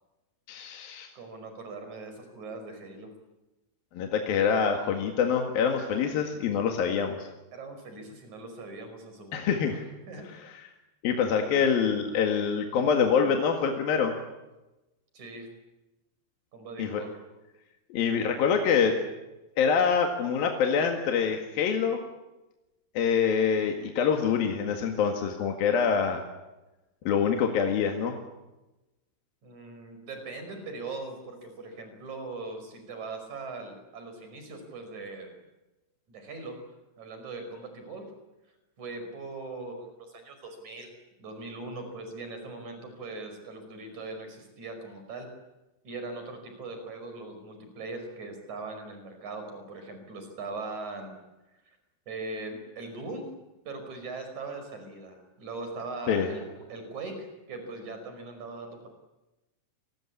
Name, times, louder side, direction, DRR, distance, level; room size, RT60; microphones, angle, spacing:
voice 1, 0.5-1.1 3.9-7.2 9.3-9.8 11.0-14.2 16.8-17.0 17.9-18.9 19.6-22.0 22.9-26.2 27.0-28.2 56.1-56.3, left 6 dB, 55° left, 3 dB, 3.2 m, -25 dB
voice 2, 1.1-3.1 5.8-6.2 7.5-9.8 10.1-10.3 15.1-15.5 16.5-17.1 29.4-35.3 36.1-36.6 37.0-38.0 38.8-40.9 41.2-45.3 45.8-51.1 51.7-51.8 52.1-53.3 53.6-56.4 56.7-58.9, right 3 dB, 35° right, 6 dB, 6.4 m, -40 dB
29.0 x 21.5 x 8.6 m, 1.0 s
omnidirectional pair, 5.8 m